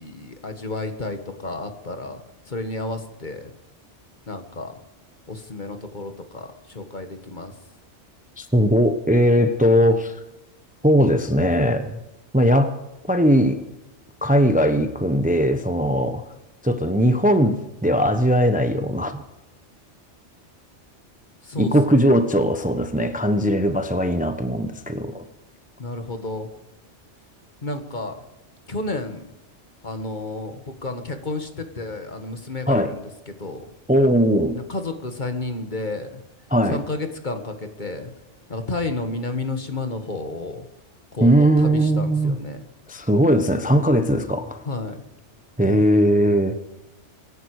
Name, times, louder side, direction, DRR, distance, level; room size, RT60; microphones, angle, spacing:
voice 1, 0.0-2.2 2.5-3.5 4.3-4.7 5.3-7.5 21.4-22.0 25.8-26.5 27.6-28.2 28.7-29.3 29.8-33.7 34.5-36.2 36.7-38.1 38.5-40.7 41.1-42.7 44.7-45.0, left 2 dB, 40° left, 7 dB, 1.7 m, -31 dB
voice 2, 8.4-10.1 10.8-12.0 12.3-12.8 13.1-13.6 14.2-16.2 16.6-19.2 21.6-25.2 32.7-32.9 33.9-34.6 36.5-36.8 41.2-42.4 42.9-44.6 45.6-46.6, equal, 10° right, 8 dB, 0.9 m, -19 dB
25.0 x 11.0 x 4.9 m, 0.93 s
omnidirectional pair, 1.2 m